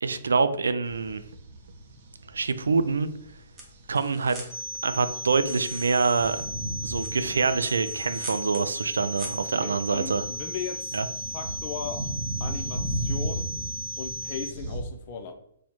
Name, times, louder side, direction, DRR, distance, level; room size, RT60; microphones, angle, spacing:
voice 1, 0.0-1.2 2.3-3.1 3.9-4.4 4.8-6.4 6.8-10.2 10.9-11.1, right 4 dB, 90° right, 11 dB, 0.3 m, -25 dB
sound 1, 0.8-14.8, right 1 dB, 50° right, 0.7 m, -37 dB
sound 2, 2.7-9.9, right 2 dB, 20° right, 0.9 m, -46 dB
sound 3, 4.5-14.5, equal, 25° left, 1.5 m, -36 dB
voice 2, 9.5-11.0 11.3-12.1 12.4-13.5 14.0-15.3, left 6 dB, 40° left, 5 dB, 0.6 m, -37 dB
4.3 x 2.1 x 2.9 m, 0.73 s
hypercardioid pair, 145°, 0 cm